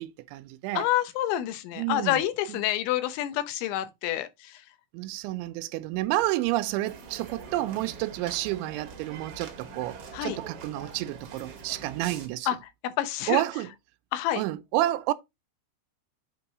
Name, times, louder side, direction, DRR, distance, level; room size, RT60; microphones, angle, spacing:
voice 1, 0.0-0.9 1.7-2.2 2.5-2.6 4.9-12.5 13.3-13.7 14.4-15.1, right 16 dB, 90° right, 3.0 m, -30 dB
voice 2, 0.7-4.6 10.1-10.4 12.5-12.6 12.8-13.4 14.1-14.4, left 13 dB, 80° left, 3.2 m, -28 dB
sound 1, 6.8-12.3, right 5 dB, 65° right, 1.5 m, -44 dB
8.0 x 4.0 x 4.8 m
omnidirectional pair, 5.3 m